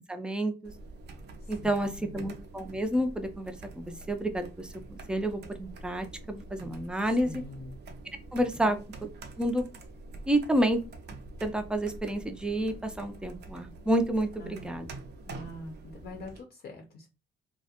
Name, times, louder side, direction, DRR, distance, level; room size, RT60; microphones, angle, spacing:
voice 1, 0.1-0.7 1.5-7.3 8.3-8.7 9.4-9.6 10.3-10.8 11.4-14.9, right 1 dB, 5° right, 7 dB, 0.4 m, -29 dB
sound 1, 0.6-16.4, right 2 dB, 60° right, 0.5 m, -46 dB
voice 2, 1.4-2.3 7.1-7.8 8.5-8.9 14.4-14.8 15.3-17.1, left 1 dB, 50° left, 2 dB, 0.6 m, -45 dB
2.3 x 2.1 x 2.8 m, 0.29 s
cardioid pair, 90°, 20 cm